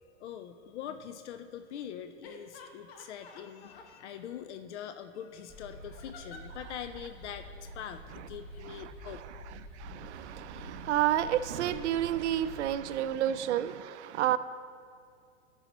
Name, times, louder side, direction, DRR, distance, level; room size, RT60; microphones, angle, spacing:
voice 1, 0.2-8.0 8.3-9.2 10.9-11.0 12.7-13.3, left 9 dB, 85° left, 0.5 m, -43 dB
sound 1, 2.2-3.9 5.9-6.8 7.9-8.1 8.5-8.6, left 4 dB, 60° left, 0.9 m, -51 dB
sound 2, 5.5-12.8, equal, 5° left, 1.1 m, -47 dB
voice 2, 9.8-14.4, right 12 dB, 85° right, 0.5 m, -30 dB
14.0 x 5.6 x 3.0 m
supercardioid pair, 170°, 34 cm